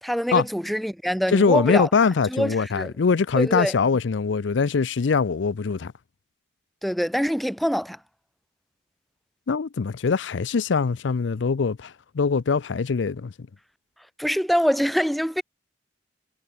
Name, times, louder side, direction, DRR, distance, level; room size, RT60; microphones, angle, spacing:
voice 1, 0.0-1.9 2.3-2.9 3.3-3.7 6.8-8.0 14.2-15.4, equal, ahead, 1.6 m, -24 dB
voice 2, 1.3-5.9 9.5-13.3, left 5 dB, 80° left, 0.5 m, -22 dB
head